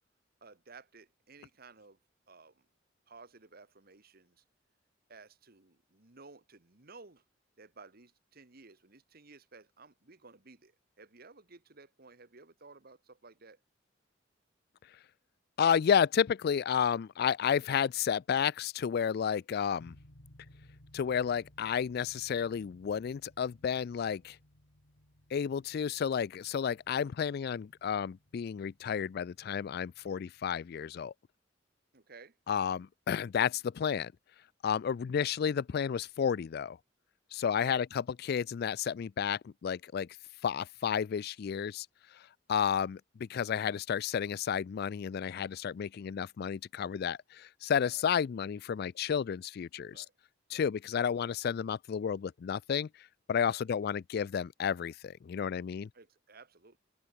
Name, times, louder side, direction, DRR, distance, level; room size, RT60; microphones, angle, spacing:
voice 1, 0.4-2.0 2.3-2.7 3.1-4.4 5.1-7.2 7.6-13.6 31.9-32.4 37.6-37.8 47.9-48.0 49.9-50.1 50.5-50.6 53.5-53.6 55.9-56.8, right 4 dB, 55° right, 1.9 m, -55 dB
voice 2, 15.6-20.0 20.9-24.4 25.3-31.1 32.5-34.1 34.6-36.8 37.3-40.1 40.4-41.9 42.1-42.2 42.5-50.0 50.5-55.9, left 7 dB, 55° left, 0.3 m, -31 dB
sound 1, 19.8-30.6, left 1 dB, 75° left, 3.4 m, -61 dB
open air
head